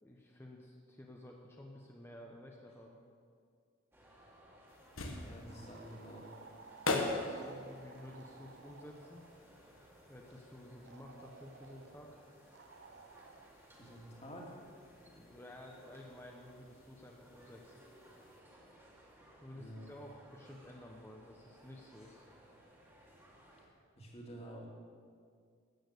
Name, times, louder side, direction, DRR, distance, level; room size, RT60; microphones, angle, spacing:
voice 1, 0.0-3.0 7.0-9.2 10.1-12.2 15.1-17.7 19.4-22.2, left 1 dB, 10° left, 0 dB, 0.8 m, -53 dB
sound 1, 3.9-23.7, equal, 10° right, 1.8 m, -61 dB
sound 2, 4.7-18.4, left 3 dB, 85° left, 1.3 m, -45 dB
voice 2, 5.2-6.4 13.8-14.5 19.5-19.9 24.0-24.7, equal, 30° left, -2 dB, 2.2 m, -49 dB
sound 3, 5.5-9.5 10.9-12.0 12.5-13.5, right 4 dB, 55° right, 0.6 m, -57 dB
13.0 x 8.7 x 6.6 m, 2.1 s
head